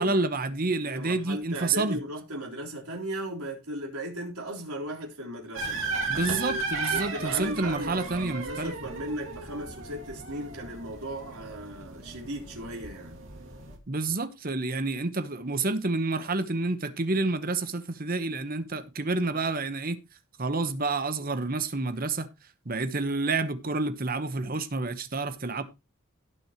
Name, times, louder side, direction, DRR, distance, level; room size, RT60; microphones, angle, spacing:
voice 1, 0.0-2.0 6.1-8.7 13.9-20.0 20.4-22.3 22.6-25.6, right 3 dB, 40° right, 1.1 m, -29 dB
voice 2, 0.8-5.8 6.2-6.6 6.9-13.2, right 1 dB, 85° right, 4.0 m, -37 dB
sound 1, 5.5-13.8, right 3 dB, 60° right, 2.5 m, -35 dB
17.5 x 6.3 x 3.0 m
head